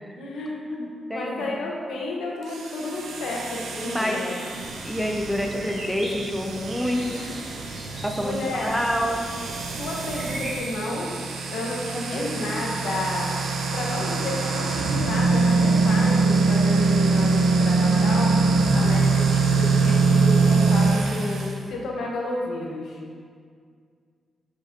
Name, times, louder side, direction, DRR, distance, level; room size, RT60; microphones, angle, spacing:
voice 1, 0.0-0.8 1.1-4.4 7.9-8.8 9.8-11.2 11.5-13.3 13.7-23.0, left 2 dB, 80° left, -2 dB, 1.0 m, -31 dB
voice 2, 0.8-1.6 3.9-7.2 8.0-9.3 12.1-12.6 18.6-18.9, equal, ahead, 2 dB, 0.4 m, -28 dB
sound 1, 2.4-21.5, right 4 dB, 90° right, 0.6 m, -23 dB
sound 2, 4.5-10.6, right 1 dB, 45° right, 1.3 m, -38 dB
6.3 x 4.4 x 3.6 m, 2.1 s
wide cardioid pair, 165°, 0 cm